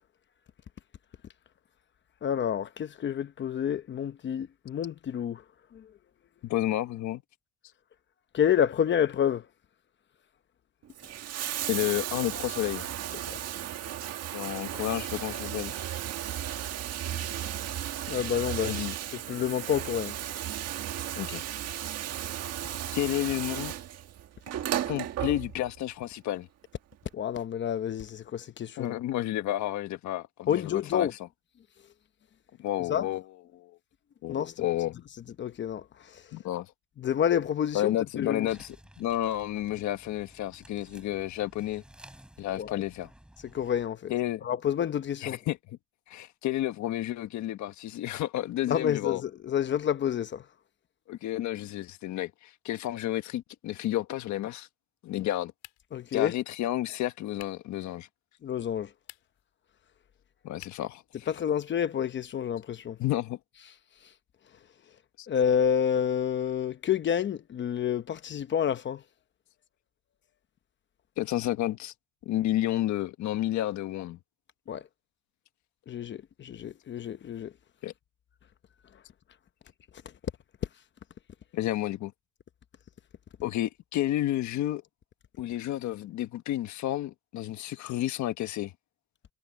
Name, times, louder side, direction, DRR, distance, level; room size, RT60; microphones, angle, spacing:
voice 1, 2.2-5.4 5.7-5.9 8.3-9.5 13.3-13.4 18.1-18.7 19.3-20.1 27.1-28.9 30.5-31.1 32.9-33.1 34.3-34.7 35.4-36.2 37.0-38.5 42.6-42.8 43.5-44.1 44.4-45.4 48.7-50.4 55.9-56.3 58.4-58.9 61.3-63.0 65.3-69.0 74.7-74.9 75.9-77.5, left 9 dB, 35° left, 0.9 m, -29 dB
voice 2, 6.4-7.2 11.7-12.9 14.3-15.7 17.1-17.2 18.6-18.9 21.2-21.5 22.9-23.7 24.9-26.5 28.8-31.1 32.6-33.2 33.5-33.7 34.2-35.0 36.3-36.7 37.7-38.7 39.0-41.8 42.4-43.1 44.1-44.4 45.2-45.6 46.1-49.2 51.1-54.7 55.0-55.5 56.1-58.1 60.4-61.3 63.0-63.4 65.2-65.3 71.2-71.9 72.2-74.2 77.8-77.9 81.5-82.1 83.4-84.8 85.4-88.7, left 14 dB, 60° left, 1.4 m, -31 dB
Bathtub (filling or washing), 10.8-25.8 26.9-27.0, right 11 dB, 50° right, 1.6 m, -35 dB
sound 1, 38.5-43.9, right 1 dB, 5° right, 6.4 m, -54 dB
sound 2, 55.6-56.1 57.3-57.7 58.9-59.5 60.6-61.0, left 18 dB, 85° left, 3.6 m, -51 dB
cardioid pair, 145°, 32 cm